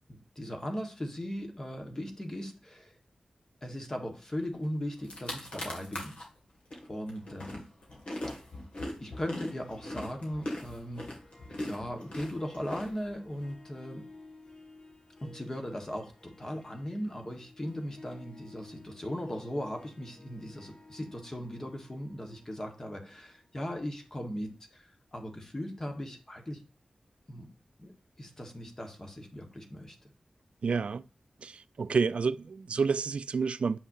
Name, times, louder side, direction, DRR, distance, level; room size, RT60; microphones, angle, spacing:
voice 1, 0.1-3.0 3.6-6.2 6.9-7.7 8.3-8.4 9.0-11.1 11.6-14.1 15.2-26.6 27.3-27.5 27.8-27.9 28.2-29.9, equal, 25° left, 1.4 m, -38 dB
sound 1, 4.6-4.7 5.0-6.3 6.7-13.5, left 1 dB, 65° left, 2.1 m, -40 dB
Harp, 9.3-24.6, left 2 dB, 50° left, 1.3 m, -56 dB
voice 2, 30.6-31.0 31.4-33.8, right 5 dB, 70° right, 0.3 m, -29 dB
7.4 x 5.6 x 2.7 m
wide cardioid pair, 105°, 2 cm